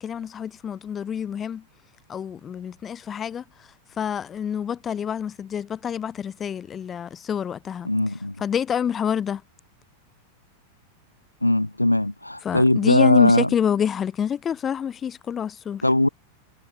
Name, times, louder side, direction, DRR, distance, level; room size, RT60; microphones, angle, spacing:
voice 1, 0.0-1.6 2.1-3.4 4.0-7.9 8.4-9.4 12.4-15.8, left 8 dB, 25° left, 1.6 m, -27 dB
voice 2, 7.9-8.4 11.4-13.5 15.8-16.1, left 1 dB, 85° left, 1.9 m, -19 dB
figure-of-eight pair, 90°, 0 cm